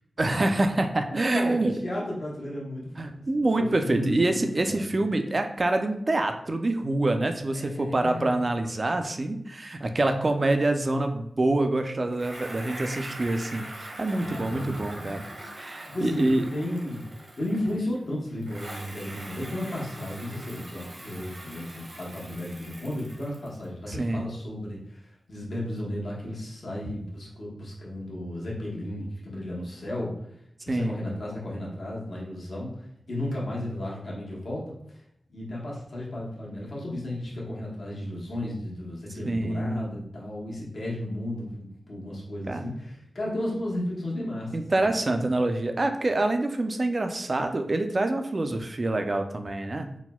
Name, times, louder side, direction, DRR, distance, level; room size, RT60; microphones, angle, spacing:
voice 1, 0.2-1.7 3.0-15.2 15.6-16.4 23.9-24.2 30.7-31.0 39.3-39.9 42.5-42.7 44.5-49.9, right 2 dB, 40° right, 6 dB, 0.3 m, -26 dB
voice 2, 1.3-4.9 7.5-8.4 14.1-15.2 15.8-25.0 25.3-30.1 30.6-32.7 33.1-34.6 35.3-45.2, left 1 dB, 70° left, -5 dB, 1.0 m, -34 dB
Bicycle, 12.1-18.0 18.4-23.6, right 1 dB, 70° right, 0.9 m, -42 dB
4.1 x 2.1 x 2.2 m, 0.74 s
wide cardioid pair, 65°, 0 cm